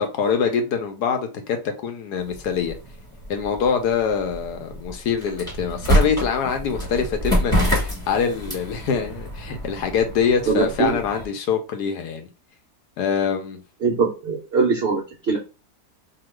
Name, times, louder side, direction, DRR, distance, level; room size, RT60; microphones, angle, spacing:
voice 1, 0.0-1.6 1.8-2.8 3.3-12.3 13.0-13.6, left 6 dB, 70° left, 1.1 m, -24 dB
sound 1, 2.2-11.3, equal, 5° left, 1.0 m, -27 dB
voice 2, 10.5-11.0 13.8-15.0 15.3-15.4, right 4 dB, 80° right, 0.5 m, -21 dB
2.9 x 2.3 x 3.0 m
omnidirectional pair, 1.9 m